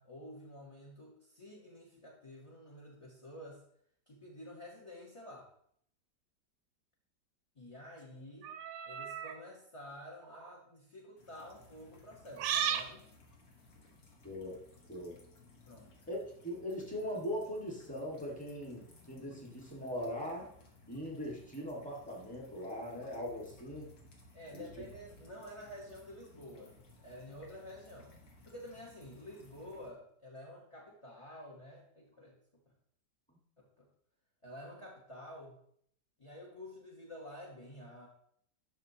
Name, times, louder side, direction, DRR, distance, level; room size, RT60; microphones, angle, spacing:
voice 1, 0.0-3.6 4.1-5.5 7.5-8.6 8.8-13.0 15.7-15.9 24.3-28.1 28.4-32.4 33.6-33.9 34.4-35.6 36.2-38.1, left 1 dB, 20° left, -3 dB, 1.0 m, -50 dB
sound 1, 8.4-9.4 10.2-10.5 12.4-12.9, right 9 dB, 80° right, 1.2 m, -35 dB
sound 2, 11.2-29.9, left 2 dB, 60° left, 1.7 m, -60 dB
voice 2, 14.2-14.6 14.9-15.2 16.1-20.5 20.9-23.9 24.5-24.8, equal, 5° left, -2 dB, 1.5 m, -40 dB
10.5 x 6.3 x 2.8 m, 0.66 s
omnidirectional pair, 1.9 m